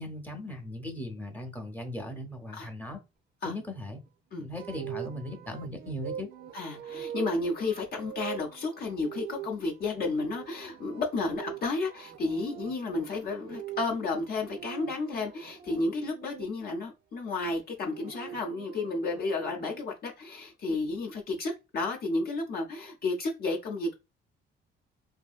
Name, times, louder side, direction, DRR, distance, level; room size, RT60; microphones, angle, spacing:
voice 1, 0.0-3.0 3.4-4.0 4.4-6.3, left 1 dB, 10° left, 0.7 m, -38 dB
sound 1, 4.5-16.5 17.6-19.8, right 11 dB, 55° right, 0.4 m, -43 dB
voice 2, 6.5-24.0, left 3 dB, 50° left, 0.6 m, -32 dB
2.6 x 2.5 x 2.4 m
cardioid pair, 120°, 20 cm